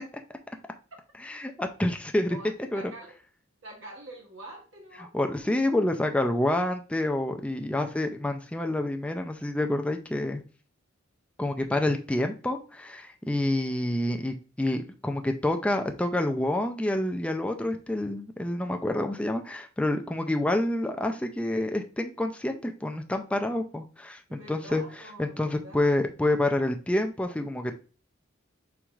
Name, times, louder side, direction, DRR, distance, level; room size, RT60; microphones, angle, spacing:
voice 1, 1.2-2.4 2.7-2.8 5.1-10.4 11.4-24.8 25.2-27.7, left 1 dB, 5° left, 5 dB, 0.3 m, -28 dB
voice 2, 2.3-3.2 3.6-5.5 24.3-26.0, right 1 dB, 70° right, -1 dB, 1.1 m, -46 dB
4.5 x 4.0 x 2.3 m, 0.36 s
head